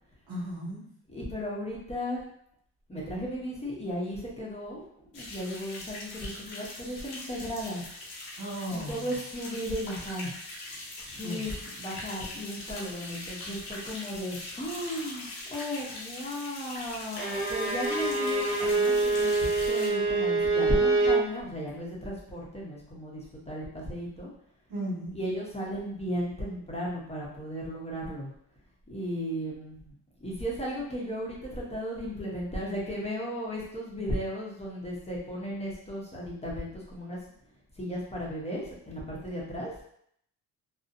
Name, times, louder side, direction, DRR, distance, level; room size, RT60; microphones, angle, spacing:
voice 1, 0.3-0.8 8.4-9.1 11.2-11.4 24.7-25.2, equal, 65° right, -6 dB, 1.3 m, -35 dB
voice 2, 1.1-2.2 2.9-4.9 5.1-7.8 8.7-10.3 11.0-24.3 25.1-28.3 28.9-29.9 30.2-37.2 37.8-39.7, equal, 15° left, -5 dB, 0.7 m, -35 dB
sound 1, 5.1-19.9, left 2 dB, 85° left, 0.8 m, -42 dB
Bowed string instrument, 17.2-21.3, right 3 dB, 25° right, 1.2 m, -25 dB
2.7 x 2.1 x 2.5 m, 0.68 s
cardioid pair, 85°, 37 cm